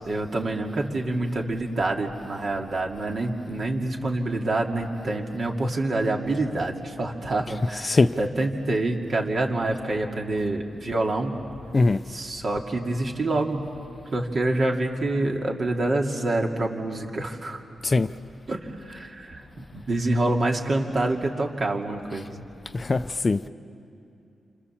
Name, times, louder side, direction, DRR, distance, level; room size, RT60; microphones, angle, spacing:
voice 1, 0.1-11.3 12.1-13.7 14.1-17.6 18.5-22.4, right 2 dB, 50° right, 2.5 m, -27 dB
voice 2, 7.6-8.1 11.7-12.0 17.8-18.1 22.7-23.4, left 3 dB, 35° left, 0.6 m, -21 dB
28.5 x 25.5 x 7.3 m
cardioid pair, 80°, 0 cm